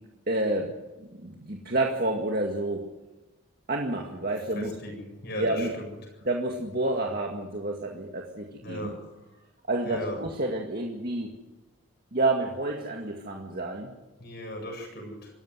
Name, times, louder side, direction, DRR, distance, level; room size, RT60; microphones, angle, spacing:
voice 1, 0.3-0.7 1.0-2.9 3.7-4.7 5.4-5.7 6.2-8.9 9.7-11.3 12.1-13.9, right 2 dB, 45° right, 1 dB, 2.1 m, -29 dB
voice 2, 4.6-5.9 8.6-9.0 9.9-10.2 14.2-15.3, equal, 50° left, 2 dB, 7.7 m, -36 dB
26.0 x 14.5 x 7.8 m, 1.1 s
head